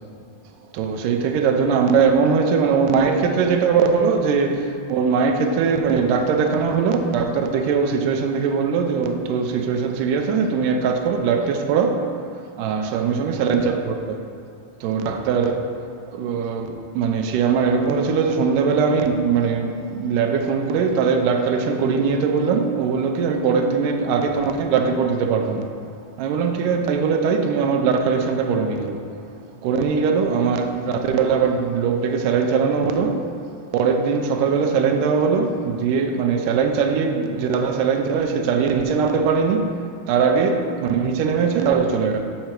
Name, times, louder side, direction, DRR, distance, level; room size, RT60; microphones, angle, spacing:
voice 1, 0.7-12.1 12.6-14.2 14.8-15.7 16.1-25.7 26.2-29.1 29.6-33.3 33.7-42.2, right 5 dB, 80° right, 5 dB, 2.1 m, -21 dB
6.7 x 6.4 x 4.4 m, 2.4 s
omnidirectional pair, 3.9 m